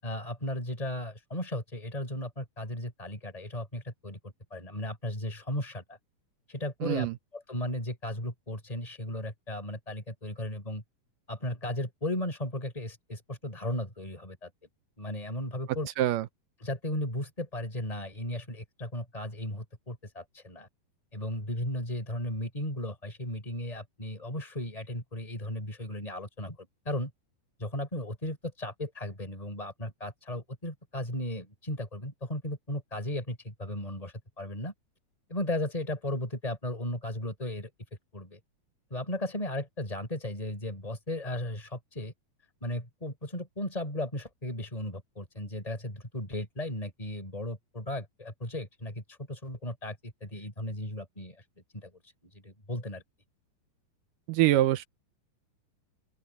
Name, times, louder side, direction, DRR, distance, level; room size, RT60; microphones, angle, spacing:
voice 1, 0.0-6.0 6.5-7.1 7.3-10.8 11.3-14.5 15.0-15.9 16.6-20.7 21.1-27.1 27.6-34.7 35.3-37.7 38.1-38.4 38.9-42.1 42.6-49.0 49.3-51.4 51.7-51.9 52.2-53.0, left 1 dB, 10° left, 6.3 m, -35 dB
voice 2, 6.8-7.1 16.0-16.3 54.3-54.8, right 14 dB, 75° right, 2.1 m, -24 dB
open air
omnidirectional pair, 4.4 m